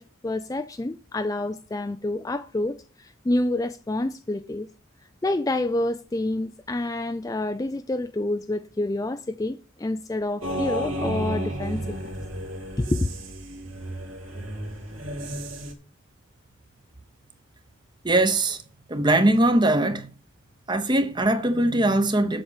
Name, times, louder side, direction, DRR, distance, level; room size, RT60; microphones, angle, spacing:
voice 1, 0.0-4.7 5.2-12.0 12.8-13.1, left 2 dB, 15° left, 0.3 m, -28 dB
sound 1, 10.4-15.7, right 1 dB, 70° right, 2.5 m, -32 dB
voice 2, 18.0-18.6 18.9-20.1 20.7-22.4, right 1 dB, 20° right, 0.9 m, -21 dB
7.9 x 6.1 x 7.1 m
head